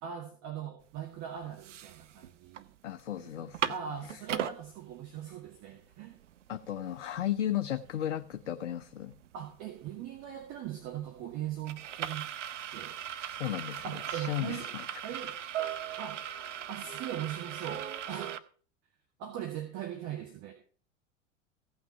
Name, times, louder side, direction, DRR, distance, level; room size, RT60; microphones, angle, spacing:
voice 1, 0.0-2.7 3.2-6.1 9.3-12.3 12.7-12.9 13.8-14.7 15.0-15.3 16.0-16.2 16.7-18.4 19.2-20.5, right 10 dB, 45° right, 3 dB, 2.1 m, -40 dB
sound 1, 1.0-1.1 1.4-2.6 3.0-3.1 3.4-4.6 5.2-5.3 5.6-18.4, right 10 dB, 75° right, 0.8 m, -39 dB
voice 2, 2.8-3.7 4.0-4.2 6.5-9.1 13.3-14.9, left 11 dB, 75° left, 11 dB, 0.6 m, -35 dB
15.5 x 6.0 x 5.6 m, 0.42 s
figure-of-eight pair, 80°, 37 cm